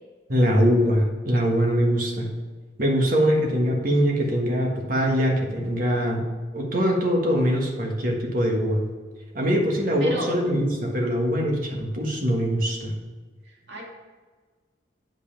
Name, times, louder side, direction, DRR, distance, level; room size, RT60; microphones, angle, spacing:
voice 1, 0.3-2.3 2.8-6.2 6.5-8.8 9.3-12.9, equal, 50° right, 0 dB, 1.5 m, -22 dB
voice 2, 9.9-10.3 13.4-13.8, right 1 dB, 70° right, -2 dB, 2.2 m, -33 dB
8.2 x 5.3 x 5.7 m, 1.4 s
head